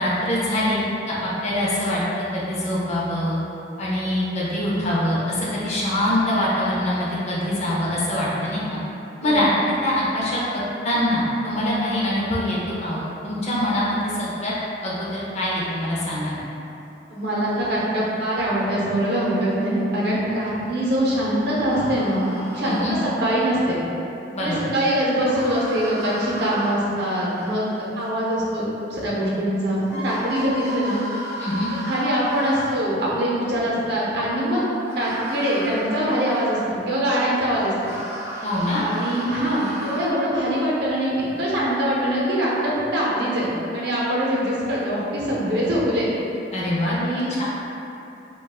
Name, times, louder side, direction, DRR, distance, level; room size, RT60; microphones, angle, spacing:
voice 1, 0.0-3.4 3.8-8.8 9.2-9.5 9.8-14.5 14.8-16.4 22.6-23.0 24.3-24.6 31.4-31.7 38.4-38.8 46.5-46.9 47.4-47.5, left 1 dB, 40° left, -6 dB, 0.5 m, -24 dB
voice 2, 17.1-22.2 22.5-23.8 24.4-31.0 31.8-34.6 35.0-37.7 38.8-46.1 46.8-47.4, equal, 65° right, -6 dB, 0.6 m, -23 dB
sound 1, 21.7-23.6 25.1-28.1 29.4-29.5 29.8-33.1 34.8-36.9 37.5-40.1, equal, 15° right, 0.4 m, -35 dB
2.4 x 2.2 x 3.5 m, 2.9 s
head